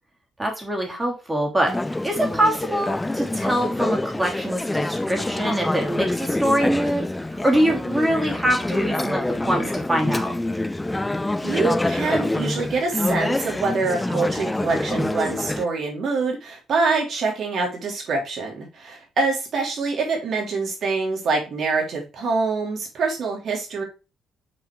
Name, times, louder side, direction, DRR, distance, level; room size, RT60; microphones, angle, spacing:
voice 1, 0.4-1.7 2.0-7.1 7.3-10.3, right 1 dB, 15° right, 1 dB, 2.9 m, -24 dB
Conversation / Chatter, 1.7-15.7, left 2 dB, 10° left, 0.4 m, -26 dB
voice 2, 11.4-23.8, right 4 dB, 55° right, -1 dB, 3.1 m, -25 dB
6.2 x 4.2 x 4.7 m, 0.29 s
cardioid pair, 90°, 0 cm